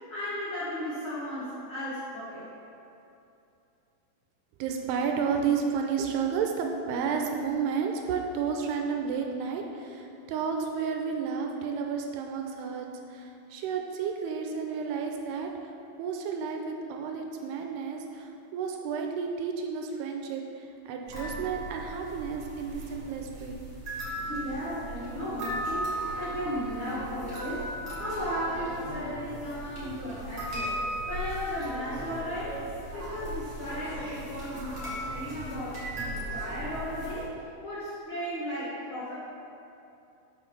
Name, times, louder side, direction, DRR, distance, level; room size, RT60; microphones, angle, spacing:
voice 1, 0.1-2.5 24.2-27.7 27.9-30.7 31.1-32.6 32.9-37.3 37.6-39.1, equal, 90° left, -9 dB, 1.1 m, -35 dB
voice 2, 4.6-23.6, right 6 dB, 85° right, 3 dB, 2.6 m, -32 dB
sound 1, 21.1-37.3, right 1 dB, 35° right, 2.0 m, -37 dB
6.9 x 5.7 x 5.8 m, 2.7 s
omnidirectional pair, 4.8 m